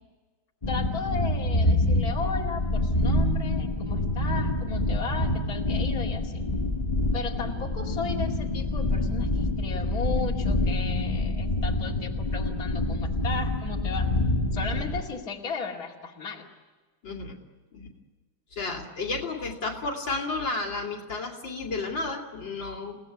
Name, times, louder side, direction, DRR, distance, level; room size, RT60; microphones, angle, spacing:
sound 1, 0.6-15.0, left 1 dB, 20° left, 1.6 m, -26 dB
voice 1, 0.7-6.4 7.1-14.1 14.5-16.5, left 4 dB, 45° left, -2 dB, 2.9 m, -35 dB
voice 2, 17.0-17.4 17.7-17.9 18.5-23.0, left 3 dB, 60° left, 1 dB, 3.3 m, -32 dB
30.0 x 18.0 x 9.7 m, 1.3 s
omnidirectional pair, 2.3 m